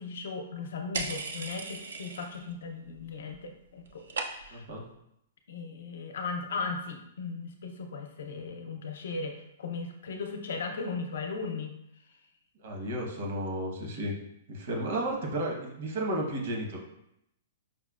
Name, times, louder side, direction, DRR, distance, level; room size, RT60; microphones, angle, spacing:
voice 1, 0.0-4.0 4.3-4.6 5.5-11.7, left 4 dB, 75° left, 4 dB, 0.6 m, -37 dB
sound 1, 0.9-2.5 2.8-3.4 3.6-4.7, right 4 dB, 90° right, 0.4 m, -37 dB
voice 2, 4.5-4.9 12.6-14.1 14.5-16.8, right 1 dB, 60° right, 0 dB, 1.0 m, -33 dB
5.4 x 2.2 x 2.4 m, 0.79 s
hypercardioid pair, 155°, 0 cm